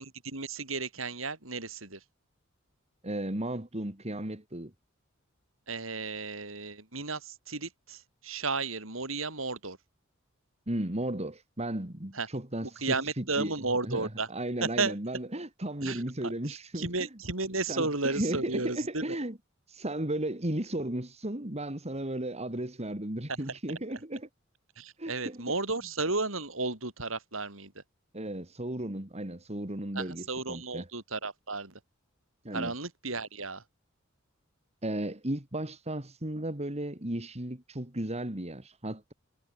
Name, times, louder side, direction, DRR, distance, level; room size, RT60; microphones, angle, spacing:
voice 1, 0.0-2.0 5.7-9.8 12.1-12.3 12.6-14.3 14.6-15.0 15.8-19.2 23.3-23.4 24.8-27.8 29.9-31.8 32.5-33.6, right 3 dB, 80° right, 7.7 m, -33 dB
voice 2, 3.0-4.7 10.7-13.5 13.8-17.1 17.7-19.4 19.7-24.3 25.0-25.4 28.1-30.9 32.4-32.7 34.8-39.1, right 1 dB, 30° right, 2.9 m, -35 dB
head